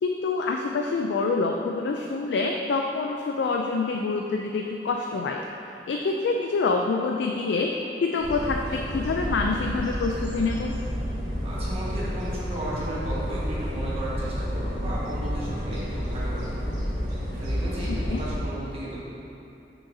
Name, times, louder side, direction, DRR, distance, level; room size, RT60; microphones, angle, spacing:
voice 1, 0.0-5.4 5.9-7.7 8.0-10.8 18.1-18.2, left 4 dB, 70° left, 2 dB, 0.3 m, -26 dB
sound 1, 8.2-18.4, equal, 70° right, 1.3 m, -30 dB
voice 2, 11.4-16.8 17.4-19.0, right 1 dB, 35° right, -8 dB, 1.4 m, -35 dB
6.4 x 5.7 x 2.7 m, 2.8 s
head